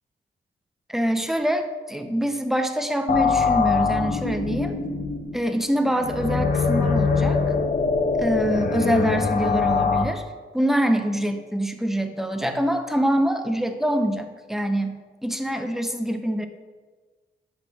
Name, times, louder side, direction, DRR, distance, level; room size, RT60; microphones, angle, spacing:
voice 1, 0.9-4.8 5.3-7.4 8.2-10.2 10.5-16.5, equal, ahead, 6 dB, 0.6 m, -25 dB
sound 1, 3.1-10.0, left 4 dB, 45° left, 0.6 m, -23 dB
7.6 x 5.9 x 2.4 m, 1.4 s
cardioid pair, 50°, 20 cm